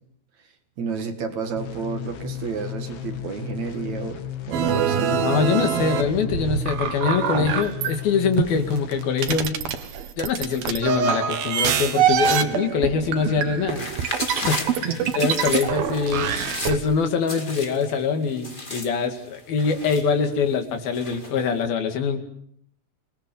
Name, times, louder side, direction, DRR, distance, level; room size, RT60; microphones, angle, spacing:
voice 1, 0.8-4.2 4.5-5.3 14.8-15.2, right 5 dB, 55° right, 6 dB, 3.2 m, -30 dB
sound 1, 1.6-9.4, left 12 dB, 55° left, 1.9 m, -34 dB
sound 2, 4.5-8.0 8.4-16.8, right 8 dB, 85° right, 3.5 m, -25 dB
voice 2, 5.2-9.6 10.2-13.9 14.4-16.3 16.7-22.2, left 5 dB, 80° left, 6 dB, 4.1 m, -24 dB
sound 3, 13.7-16.9 17.3-18.0 18.3-20.5 20.9-21.4, left 2 dB, 15° left, 1.8 m, -34 dB
27.0 x 21.0 x 7.0 m, 0.69 s
omnidirectional pair, 4.2 m